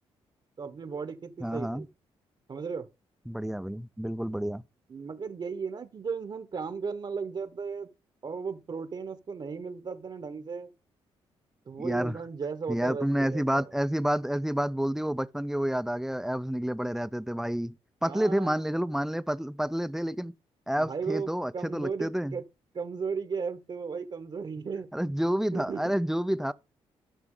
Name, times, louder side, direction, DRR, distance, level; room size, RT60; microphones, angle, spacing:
voice 1, 0.6-1.9 2.5-2.9 4.9-7.9 8.2-10.7 11.7-13.7 18.0-18.6 20.8-21.3 21.5-22.4 22.7-24.9 25.5-26.0, right 5 dB, 45° right, 1.1 m, -35 dB
voice 2, 1.4-1.9 3.3-4.6 11.8-12.2 12.7-17.7 18.0-20.3 20.7-22.4 24.9-26.5, equal, 5° right, 0.5 m, -29 dB
13.0 x 6.0 x 3.8 m
cardioid pair, 80°, 11 cm